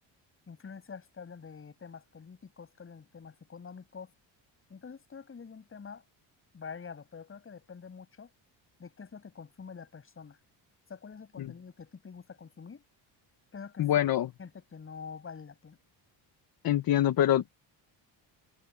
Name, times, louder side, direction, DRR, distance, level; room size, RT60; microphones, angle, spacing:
voice 1, 0.5-4.1 4.7-6.0 6.5-8.3 8.8-10.4 10.9-12.8 13.5-14.1 14.4-15.8, left 6 dB, 30° left, 7.9 m, -46 dB
voice 2, 13.8-14.3 16.6-17.6, left 12 dB, 50° left, 1.2 m, -25 dB
cardioid pair, 145°, 46 cm